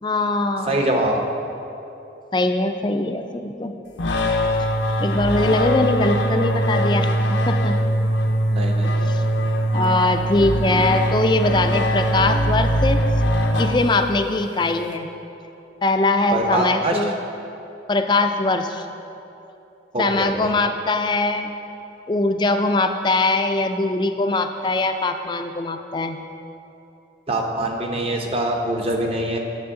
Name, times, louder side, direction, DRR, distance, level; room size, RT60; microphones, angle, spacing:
voice 1, 0.0-0.8 2.3-3.7 4.6-4.7 5.0-7.7 8.8-9.2 9.7-13.0 13.6-15.1 15.8-17.1 17.9-18.9 20.0-21.5 22.1-26.2, left 2 dB, 25° left, 7 dB, 0.4 m, -21 dB
voice 2, 0.7-1.2 8.5-9.1 16.3-17.0 19.9-20.5 27.3-29.4, right 1 dB, 30° right, 2 dB, 0.7 m, -23 dB
sound 1, 4.0-14.2, equal, 85° left, 0.7 m, -21 dB
9.5 x 7.0 x 3.7 m, 2.8 s
head